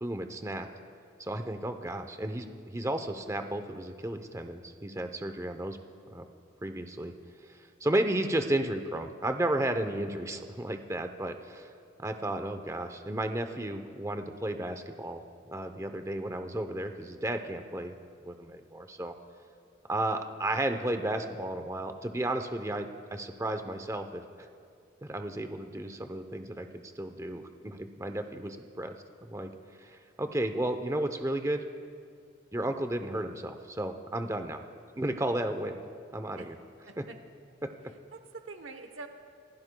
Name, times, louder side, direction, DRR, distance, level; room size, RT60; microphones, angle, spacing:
voice 1, 0.0-0.7 1.2-5.8 6.1-6.3 6.6-7.1 7.5-11.7 12.0-15.2 15.5-17.9 18.2-19.1 19.9-24.5 25.0-28.9 29.2-29.5 29.8-31.6 32.5-34.6 35.0-35.8 36.1-36.6 37.0-37.1 37.6-37.7, right 1 dB, 15° right, 7 dB, 0.7 m, -33 dB
voice 2, 36.9-37.2 38.1-39.1, right 3 dB, 90° right, 6 dB, 0.9 m, -45 dB
27.0 x 15.5 x 2.3 m, 2.3 s
head